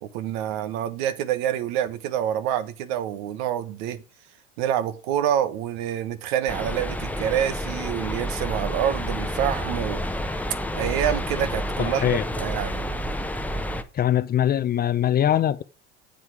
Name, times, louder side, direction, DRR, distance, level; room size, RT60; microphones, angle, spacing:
voice 1, 0.0-4.0 4.6-10.0 10.7-12.9, right 10 dB, 70° right, 1.3 m, -27 dB
sound 1, 6.5-13.8, equal, 5° left, 0.9 m, -29 dB
voice 2, 11.8-12.2 13.9-15.6, left 10 dB, 30° left, 0.6 m, -22 dB
7.9 x 7.3 x 4.8 m
supercardioid pair, 95°, 32 cm